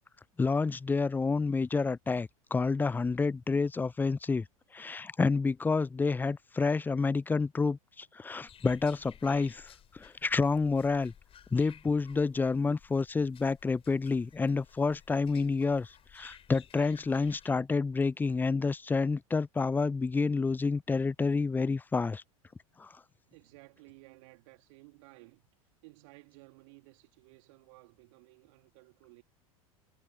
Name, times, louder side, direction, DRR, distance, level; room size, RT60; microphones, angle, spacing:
voice 1, 0.4-4.5 4.7-11.1 11.5-22.2 22.8-22.9, left 4 dB, 10° left, 0.5 m, -29 dB
sound 1, 8.5-17.5, left 9 dB, 30° left, 5.1 m, -57 dB
voice 2, 23.3-25.4 25.8-29.2, right 26 dB, 55° right, 2.4 m, -56 dB
figure-of-eight pair, 85°, 19 cm